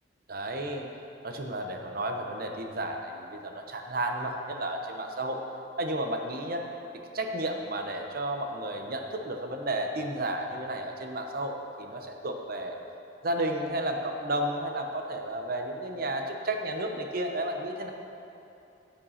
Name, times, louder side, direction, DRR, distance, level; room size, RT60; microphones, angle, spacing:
voice 1, 0.3-0.9 1.2-5.4 5.8-6.6 7.1-12.8 13.2-17.9, right 1 dB, 50° right, 3 dB, 0.9 m, -32 dB
14.5 x 5.3 x 5.7 m, 2.8 s
head